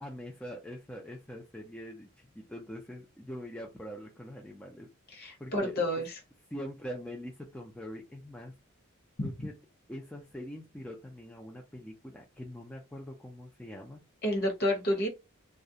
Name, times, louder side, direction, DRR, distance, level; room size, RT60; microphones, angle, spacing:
voice 1, 0.0-4.9 5.4-5.8 6.5-8.5 9.2-9.5 9.9-14.0, equal, 5° left, 0.4 m, -43 dB
voice 2, 5.1-6.1 9.2-9.3 14.2-15.1, left 1 dB, 45° left, 1.0 m, -29 dB
2.4 x 2.1 x 2.7 m
head